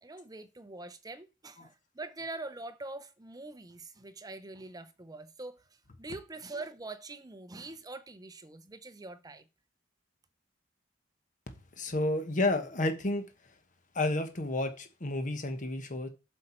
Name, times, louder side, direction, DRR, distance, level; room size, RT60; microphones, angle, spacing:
voice 1, 0.0-9.5, right 2 dB, 20° right, 0.7 m, -44 dB
voice 2, 11.8-13.2 13.9-16.1, left 2 dB, 40° left, 1.1 m, -30 dB
7.9 x 6.5 x 4.4 m
head